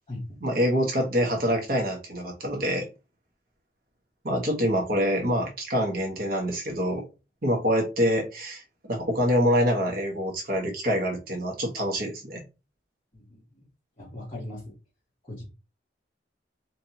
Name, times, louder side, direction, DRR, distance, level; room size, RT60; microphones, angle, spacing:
voice 1, 0.4-2.9 4.2-7.0 7.4-8.6 8.9-12.4, equal, 50° right, 1 dB, 1.1 m, -25 dB
voice 2, 14.0-14.7 15.2-15.4, left 1 dB, 30° left, -7 dB, 1.7 m, -38 dB
4.2 x 2.6 x 2.8 m, 0.28 s
head